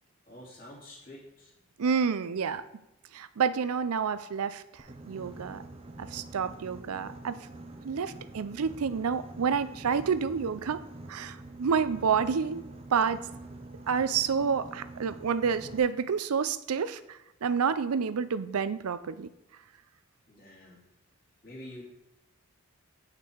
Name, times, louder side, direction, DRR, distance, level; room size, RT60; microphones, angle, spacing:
voice 1, 0.3-1.5 20.3-20.8 21.4-21.8, left 1 dB, 40° left, -4 dB, 2.7 m, -47 dB
voice 2, 1.8-2.6 3.1-5.6 6.0-7.4 7.8-10.8 11.1-12.6 12.9-13.2 13.9-19.3, right 6 dB, 90° right, 14 dB, 0.5 m, -29 dB
Boat Water vehicle, 4.8-15.8, right 2 dB, 25° right, 0.6 m, -46 dB
8.2 x 5.9 x 4.6 m, 0.91 s
head